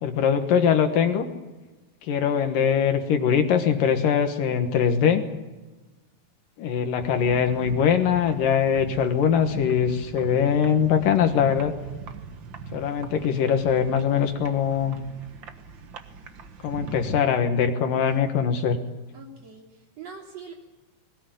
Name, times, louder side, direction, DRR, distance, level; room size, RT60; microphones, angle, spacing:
voice 1, 0.0-1.3 2.0-5.2 6.6-11.7 12.7-15.0 16.6-18.8, left 7 dB, 65° left, 6 dB, 2.9 m, -22 dB
sound 1, 7.0-17.2, right 5 dB, 70° right, 1.1 m, -40 dB
voice 2, 19.1-20.5, right 5 dB, 45° right, 0 dB, 4.0 m, -43 dB
21.0 x 17.5 x 9.2 m, 1.1 s
omnidirectional pair, 4.4 m